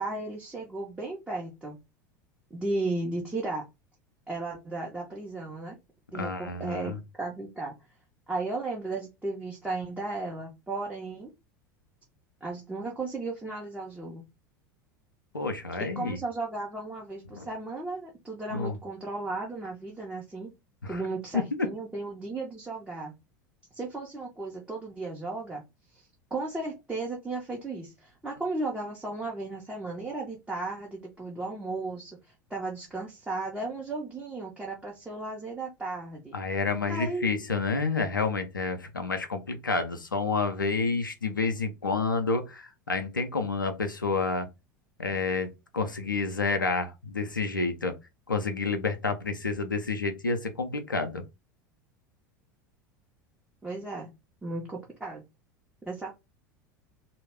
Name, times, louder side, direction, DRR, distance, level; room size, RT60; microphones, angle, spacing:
voice 1, 0.0-1.8 2.5-3.7 4.3-5.8 6.1-7.8 8.3-11.3 12.4-14.2 15.8-20.5 20.9-23.1 23.7-25.6 25.9-32.2 32.5-36.3 36.9-37.3 53.6-54.1 54.4-55.2 55.8-56.1, right 3 dB, 10° right, 0.6 m, -35 dB
voice 2, 6.1-7.0 15.3-16.2 17.3-17.5 18.5-18.7 20.8-21.0 21.3-21.4 36.3-44.5 45.0-47.9 48.3-51.2, left 4 dB, 85° left, 0.4 m, -29 dB
2.2 x 2.0 x 3.3 m
figure-of-eight pair, 80°, 11 cm